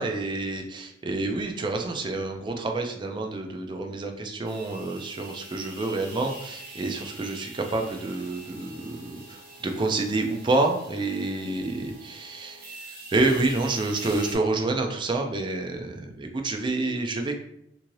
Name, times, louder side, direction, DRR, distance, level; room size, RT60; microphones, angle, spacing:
voice 1, 0.0-17.4, right 2 dB, 25° right, 3 dB, 0.4 m, -28 dB
sound 1, 4.4-14.4, right 2 dB, 55° right, 0.8 m, -44 dB
3.0 x 2.6 x 2.6 m, 0.74 s
head